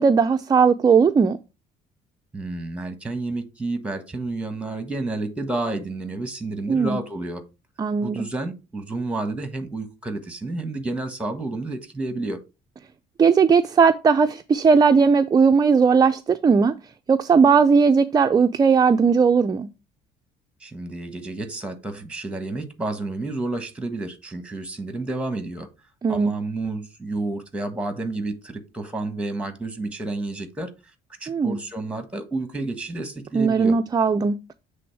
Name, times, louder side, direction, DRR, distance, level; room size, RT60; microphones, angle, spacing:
voice 1, 0.0-1.4 6.7-7.0 7.8-8.3 13.2-16.7 17.1-19.7 26.0-26.3 31.3-31.6 33.3-34.4, right 5 dB, 25° right, 0.4 m, -18 dB
voice 2, 2.3-7.4 8.0-12.4 20.6-25.7 26.1-30.7 31.2-33.8, right 2 dB, 5° right, 1.3 m, -30 dB
7.7 x 3.4 x 4.5 m
cardioid pair, 110°, 17 cm